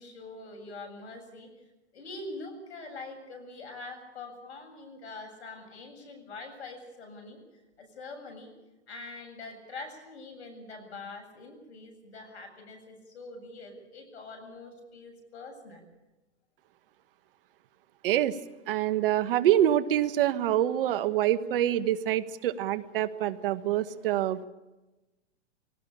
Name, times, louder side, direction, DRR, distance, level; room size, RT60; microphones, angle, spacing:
voice 1, 0.0-1.5 1.9-7.4 7.8-8.5 8.9-15.8, left 3 dB, 70° left, 4 dB, 7.8 m, -44 dB
voice 2, 18.0-18.3 18.7-24.4, right 12 dB, 50° right, 14 dB, 1.3 m, -26 dB
21.0 x 18.5 x 8.7 m, 1.1 s
hypercardioid pair, 135°, 34 cm